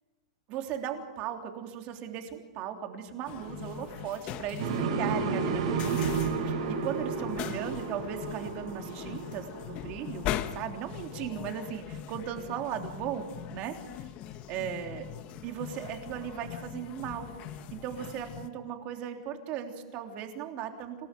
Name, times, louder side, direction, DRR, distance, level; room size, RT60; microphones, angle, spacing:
voice 1, 0.5-6.1 6.4-10.3 10.5-13.7 14.5-15.1 15.4-17.3 17.7-21.0, right 9 dB, 35° right, 4 dB, 3.3 m, -37 dB
sound 1, 3.3-18.5, left 11 dB, 35° left, 1.3 m, -41 dB
sound 2, 4.6-10.6, right 5 dB, 60° right, 6.2 m, -32 dB
27.0 x 18.5 x 9.3 m, 1.2 s
supercardioid pair, 155°, 4 cm